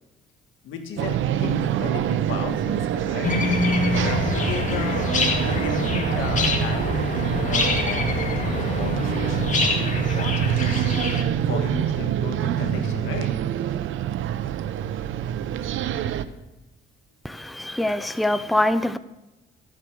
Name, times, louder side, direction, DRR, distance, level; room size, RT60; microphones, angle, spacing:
voice 1, 0.6-3.3 4.0-10.9 11.4-13.3, left 6 dB, 80° left, 5 dB, 1.9 m, -35 dB
sound 1, 1.0-16.2, right 10 dB, 80° right, 0.7 m, -26 dB
sound 2, 3.2-11.2, left 3 dB, 40° left, 2.1 m, -25 dB
voice 2, 17.2-19.0, left 1 dB, ahead, 12 dB, 0.6 m, -24 dB
13.0 x 8.4 x 6.2 m, 1.0 s
cardioid pair, 90°, 20 cm